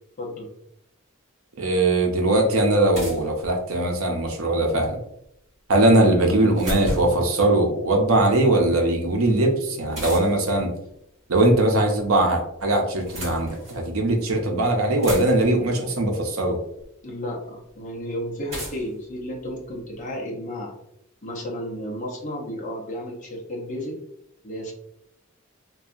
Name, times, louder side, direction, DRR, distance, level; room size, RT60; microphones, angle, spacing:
voice 1, 0.2-0.5 6.2-6.5 17.0-20.7 21.2-24.0 24.4-24.7, equal, 35° left, -1 dB, 0.6 m, -33 dB
voice 2, 1.6-5.0 5.7-10.7 11.3-16.6, right 1 dB, 70° right, 2 dB, 0.6 m, -20 dB
sound 1, 2.9-4.0 6.1-7.3 9.9-10.5 11.7-12.3 12.9-13.9 14.5-14.6 14.8-15.7 16.8-16.9 18.5-20.0, equal, 30° right, 1.3 m, -34 dB
2.7 x 2.3 x 2.4 m, 0.79 s
head